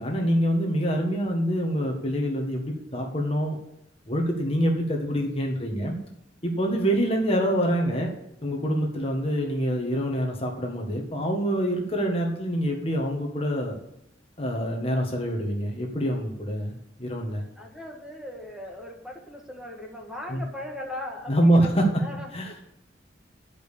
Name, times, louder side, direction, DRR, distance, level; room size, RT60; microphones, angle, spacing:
voice 1, 0.0-3.6 4.1-6.0 6.4-8.1 8.4-13.8 14.4-17.4 20.3-20.4 21.3-22.0 22.3-22.5, equal, 30° left, 1 dB, 1.6 m, -25 dB
voice 2, 17.6-22.5, left 1 dB, 5° right, -1 dB, 1.6 m, -39 dB
10.5 x 5.4 x 6.8 m, 0.80 s
head